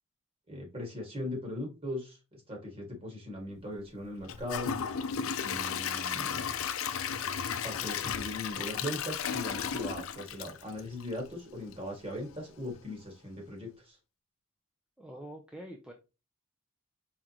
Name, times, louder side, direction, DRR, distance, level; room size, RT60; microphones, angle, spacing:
voice 1, 0.5-4.7 5.4-6.4 7.6-14.0, left 1 dB, 25° right, 0 dB, 1.8 m, -39 dB
Gurgling / Toilet flush / Trickle dribble, 4.2-11.3 11.7-11.8 12.3-12.4, left 7 dB, 65° left, 0.5 m, -34 dB
voice 2, 15.0-15.9, right 1 dB, 5° right, 2 dB, 0.5 m, -45 dB
4.9 x 3.7 x 2.9 m, 0.29 s
head